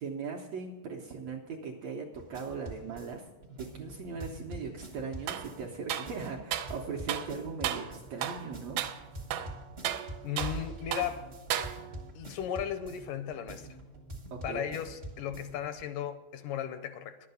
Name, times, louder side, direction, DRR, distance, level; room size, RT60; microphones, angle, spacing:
voice 1, 0.0-3.2 3.5-8.8 14.3-14.7, right 5 dB, 70° right, 1.6 m, -39 dB
sound 1, 2.1-15.8, right 2 dB, 45° right, 0.8 m, -45 dB
sound 2, 5.3-5.5 5.9-6.8 7.1-7.3 7.6-7.9 8.2-8.5 8.8-9.0 9.3-10.6 10.9-11.1 11.5-12.1, right 11 dB, 90° right, 2.4 m, -34 dB
voice 2, 10.2-11.3 12.1-13.7 14.4-17.2, left 9 dB, 80° left, 2.0 m, -36 dB
11.0 x 8.6 x 6.8 m
omnidirectional pair, 4.0 m